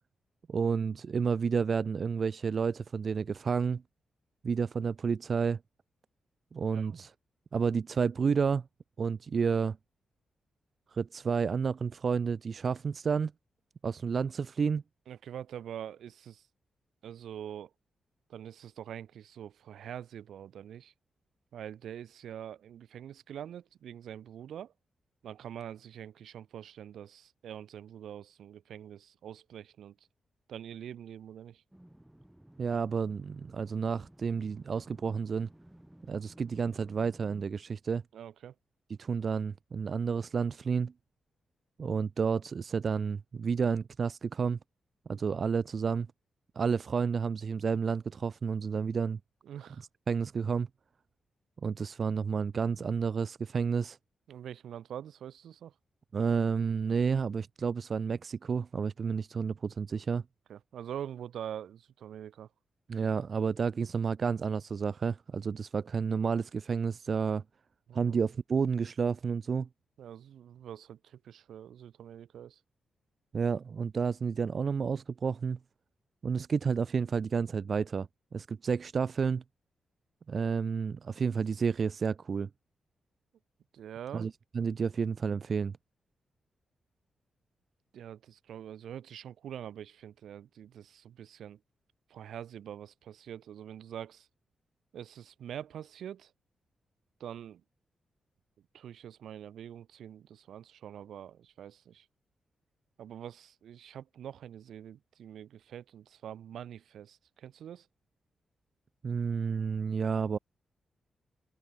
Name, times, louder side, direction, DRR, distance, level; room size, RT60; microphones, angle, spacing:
voice 1, 0.5-3.8 4.4-5.6 6.5-7.1 7.5-8.7 9.0-9.8 10.9-13.3 13.8-14.8 32.6-35.5 36.1-38.0 39.0-40.9 41.8-44.6 45.1-46.1 46.6-49.2 50.1-50.7 51.6-54.0 56.1-60.2 62.9-67.4 67.9-69.7 73.3-75.6 76.2-78.1 78.3-79.4 80.3-82.5 84.1-85.8 109.0-110.4, right 5 dB, 45° right, 0.7 m, -30 dB
voice 2, 15.1-16.5 17.0-17.7 18.3-20.9 21.5-24.7 25.2-30.0 30.5-31.6 38.1-38.5 49.4-49.9 54.3-55.7 60.5-62.5 67.9-68.1 70.0-72.6 83.7-84.3 87.9-91.6 92.1-94.3 94.9-96.3 97.2-97.6 98.7-102.1 103.0-107.9, right 10 dB, 90° right, 4.0 m, -44 dB
sound 1, 31.7-37.5, right 1 dB, 5° right, 4.2 m, -56 dB
wide cardioid pair, 135°, 0 cm